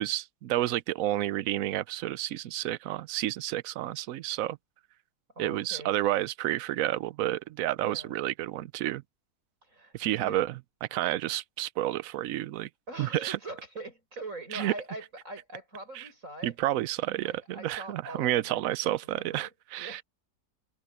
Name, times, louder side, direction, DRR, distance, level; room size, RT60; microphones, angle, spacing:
voice 1, 0.0-4.6 5.4-9.0 9.9-10.5 10.8-12.7 13.0-13.4 14.5-14.7 15.9-16.0 16.4-20.0, right 14 dB, 70° right, 0.9 m, -30 dB
voice 2, 5.3-5.9 7.8-8.2 9.6-10.4 12.9-16.5 17.2-20.0, right 2 dB, 50° right, 8.1 m, -43 dB
omnidirectional pair, 1.7 m